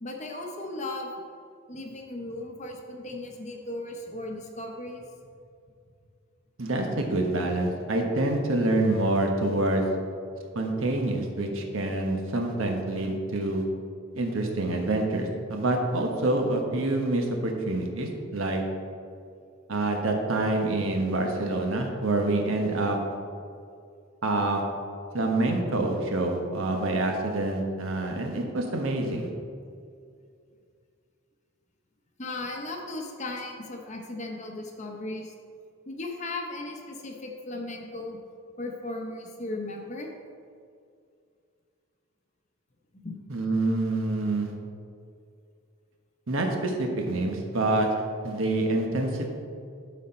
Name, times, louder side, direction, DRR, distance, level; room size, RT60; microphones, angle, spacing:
voice 1, 0.0-1.1 1.7-5.0 32.2-35.3 35.9-38.2 38.6-40.1 42.9-43.2, left 2 dB, 30° left, 2 dB, 0.8 m, -36 dB
voice 2, 6.6-9.8 10.5-13.6 14.1-18.6 19.7-23.0 24.2-24.6 25.1-29.3 43.3-44.5 46.3-47.9 48.2-49.3, right 2 dB, 70° right, 2 dB, 1.0 m, -26 dB
11.5 x 4.3 x 4.3 m, 2.3 s
head